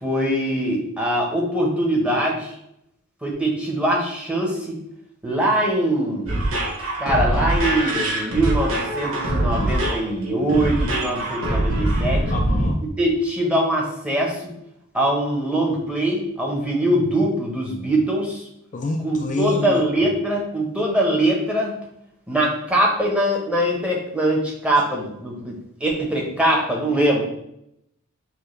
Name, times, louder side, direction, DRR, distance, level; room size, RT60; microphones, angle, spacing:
voice 1, 0.0-2.5 3.2-4.8 5.2-6.3 7.0-12.2 13.0-14.5 14.9-18.4 19.0-21.8 22.3-25.5 25.8-27.2, right 1 dB, 5° right, -2 dB, 1.0 m, -22 dB
sound 1, 6.3-12.7, right 1 dB, 70° right, 1.1 m, -23 dB
voice 2, 12.3-12.8 18.7-19.8, left 3 dB, 35° left, 2 dB, 0.4 m, -27 dB
6.7 x 2.3 x 3.2 m, 0.77 s
head